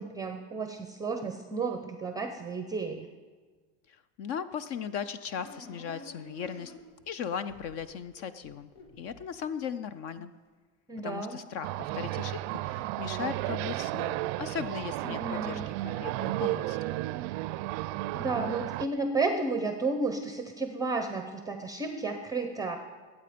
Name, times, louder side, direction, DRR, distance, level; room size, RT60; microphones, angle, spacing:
voice 1, 0.0-3.1 10.9-11.4 15.0-15.7 18.1-22.8, right 3 dB, 10° right, 7 dB, 0.7 m, -32 dB
voice 2, 3.9-6.7 7.1-8.7 9.0-10.3 11.0-17.0, left 7 dB, 40° left, 14 dB, 0.5 m, -37 dB
sound 1, 5.4-7.1 7.5-9.8, left 2 dB, 75° left, 2.7 m, -50 dB
sound 2, 11.6-18.9, right 17 dB, 55° right, 0.4 m, -33 dB
20.5 x 8.6 x 5.1 m, 1.4 s
supercardioid pair, 145°, 35 cm